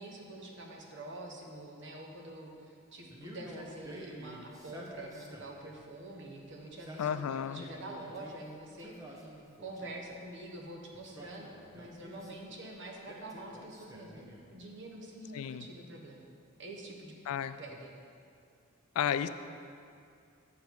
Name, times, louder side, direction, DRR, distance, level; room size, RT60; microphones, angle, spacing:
voice 1, 0.0-9.3 9.6-16.3 16.6-17.1 17.6-18.0, right 1 dB, 55° right, 0 dB, 1.1 m, -46 dB
Male speech man speaking, 3.1-5.7 6.6-8.4 8.8-10.1 10.9-12.5 13.1-14.6, right 1 dB, 15° right, 0.8 m, -50 dB
voice 2, 7.0-7.7 15.3-15.7 17.3-17.6 19.0-19.3, left 9 dB, 75° left, 13 dB, 0.3 m, -32 dB
7.3 x 7.1 x 4.6 m, 2.4 s
head